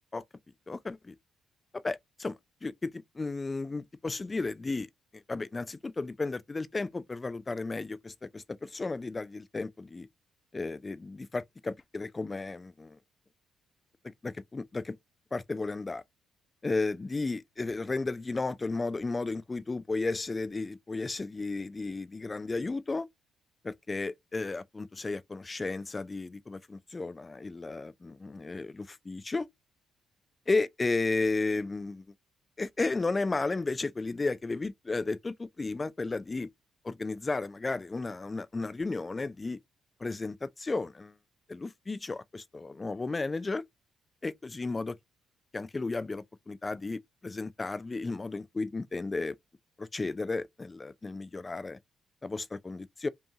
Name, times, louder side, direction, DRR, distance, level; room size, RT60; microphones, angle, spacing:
voice 1, 0.7-1.1 1.7-4.9 5.1-10.1 10.5-13.0 14.2-15.0 15.3-16.0 16.6-23.1 23.6-29.5 30.5-32.0 32.6-36.5 36.8-39.6 40.0-41.2 41.5-43.6 44.2-45.0 45.5-49.4 49.8-51.8 52.2-53.1, left 3 dB, 25° left, 0.3 m, -33 dB
5.3 x 2.3 x 2.7 m
cardioid pair, 90°, 0 cm